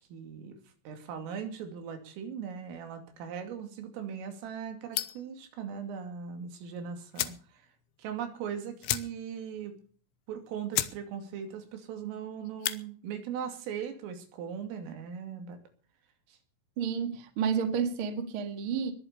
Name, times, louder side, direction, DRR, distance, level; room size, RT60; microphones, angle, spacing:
voice 1, 0.1-0.6 0.9-7.7 8.0-9.7 10.3-15.6 16.3-16.4, right 7 dB, 90° right, 5.3 m, -39 dB
sound 1, 4.9-5.3 6.6-6.7 7.1-7.5 7.8-7.9 8.2-8.3 8.8-9.4 9.8-9.9 10.4-10.5 10.7-11.0 11.3-11.7 12.4-12.8, left 15 dB, 80° left, 3.3 m, -33 dB
voice 2, 16.8-18.9, right 7 dB, 50° right, 1.6 m, -30 dB
21.5 x 8.0 x 6.8 m
omnidirectional pair, 5.7 m